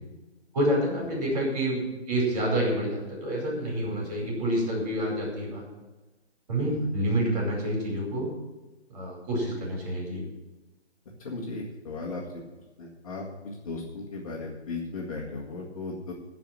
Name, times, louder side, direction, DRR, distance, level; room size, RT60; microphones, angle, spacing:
voice 1, 0.5-5.6 6.5-8.3 8.9-10.2, right 1 dB, 35° right, -2 dB, 5.0 m, -28 dB
voice 2, 6.6-6.9 11.2-12.4 12.8-16.1, left 3 dB, 30° left, -3 dB, 1.9 m, -36 dB
14.5 x 5.1 x 8.8 m, 1.1 s
figure-of-eight pair, 145°, 34 cm